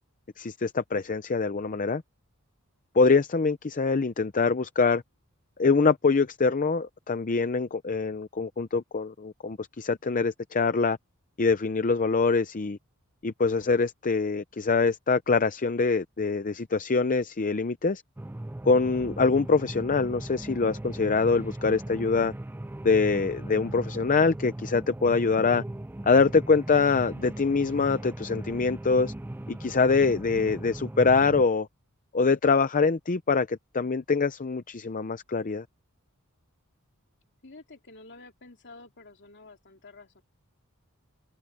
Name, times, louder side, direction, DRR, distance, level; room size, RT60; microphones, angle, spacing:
voice 1, 0.4-2.0 2.9-5.0 5.6-11.0 11.4-12.8 13.2-18.0 18.6-22.3 22.8-25.6 26.0-29.1 29.5-31.7 32.1-35.6, left 4 dB, 35° left, 0.6 m, -24 dB
sound 1, 18.2-31.4, right 1 dB, 10° right, 0.4 m, -38 dB
voice 2, 37.4-40.2, left 3 dB, 55° left, 3.4 m, -49 dB
open air
head